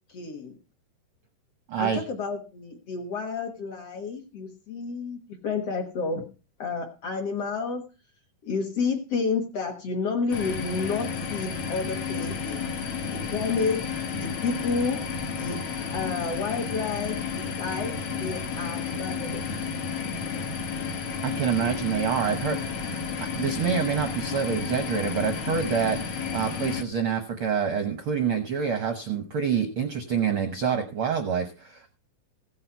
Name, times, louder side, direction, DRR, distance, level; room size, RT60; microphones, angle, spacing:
voice 1, 0.1-0.6 1.8-6.2 6.6-7.8 8.4-12.6 13.1-13.8 14.2-15.0 15.4-15.6 15.9-19.5, left 4 dB, 55° left, 3 dB, 2.0 m, -30 dB
voice 2, 1.7-2.0 21.2-26.0 26.3-32.0, right 7 dB, 70° right, 7 dB, 1.2 m, -27 dB
sound 1, 10.3-26.8, left 6 dB, 75° left, 1.1 m, -32 dB
16.0 x 8.7 x 4.6 m, 0.34 s
omnidirectional pair, 4.1 m